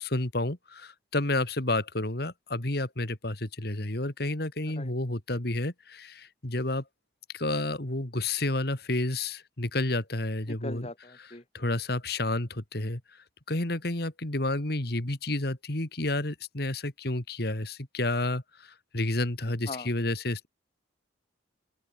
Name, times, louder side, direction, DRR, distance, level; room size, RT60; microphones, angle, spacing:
voice 1, 0.0-6.8 7.3-10.9 11.2-11.3 11.5-13.0 13.5-20.5, left 2 dB, 55° left, 2.5 m, -30 dB
voice 2, 10.5-11.4 19.7-19.9, left 2 dB, 35° left, 2.9 m, -40 dB
open air
head